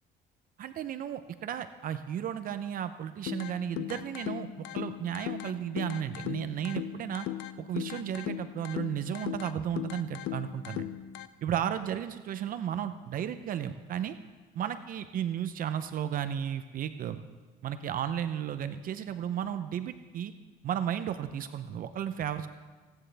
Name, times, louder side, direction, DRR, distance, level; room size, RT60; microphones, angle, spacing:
voice 1, 0.6-4.5 4.7-7.3 7.6-10.9 11.4-14.2 14.6-17.2 17.6-20.3 20.6-22.5, right 9 dB, 55° right, 10 dB, 0.6 m, -34 dB
sound 1, 3.3-11.3, left 13 dB, 80° left, 0.6 m, -38 dB
26.5 x 10.0 x 3.4 m, 1.4 s
cardioid pair, 110°, 17 cm